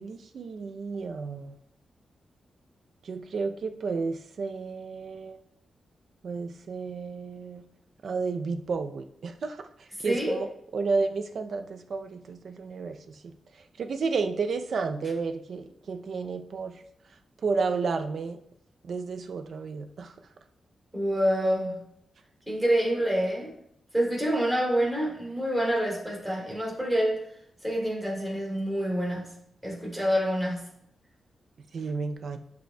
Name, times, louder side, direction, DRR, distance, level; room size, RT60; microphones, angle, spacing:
voice 1, 0.0-1.6 3.0-5.4 6.2-7.6 8.0-9.7 10.0-10.5 10.7-13.3 13.8-16.8 17.4-18.4 18.8-20.1 31.7-32.4, right 4 dB, 65° right, 8 dB, 0.5 m, -32 dB
voice 2, 10.0-10.4 20.9-21.8 22.5-23.5 23.9-27.2 27.6-29.3 29.6-30.7, equal, 5° right, -4 dB, 3.0 m, -27 dB
11.5 x 5.2 x 2.3 m, 0.73 s
wide cardioid pair, 110°, 0 cm